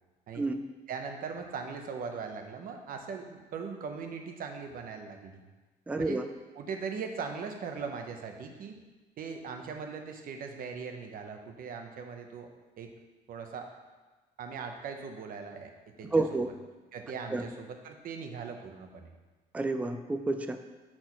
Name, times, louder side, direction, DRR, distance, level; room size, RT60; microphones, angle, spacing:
voice 1, 0.9-5.4 6.0-6.2 6.5-8.8 9.2-12.5 12.8-12.9 13.3-13.7 14.4-15.7 16.0-16.5 16.9-19.1, right 5 dB, 55° right, 4 dB, 1.0 m, -40 dB
voice 2, 5.9-6.2 16.1-16.5 17.3-17.4 19.5-20.6, right 2 dB, 10° right, 7 dB, 0.4 m, -29 dB
6.3 x 4.4 x 5.9 m, 1.2 s
cardioid pair, 110°, 17 cm